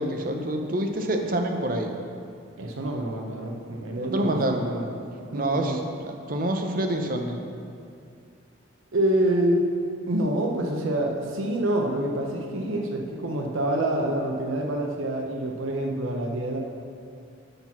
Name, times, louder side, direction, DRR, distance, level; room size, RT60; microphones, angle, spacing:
voice 1, 0.0-2.0 4.0-4.7 5.3-7.4, right 1 dB, 45° right, 4 dB, 0.7 m, -27 dB
voice 2, 2.6-5.8 8.9-9.7 10.1-16.6, right 1 dB, 80° right, 2 dB, 0.8 m, -27 dB
6.7 x 5.9 x 5.9 m, 2.4 s
head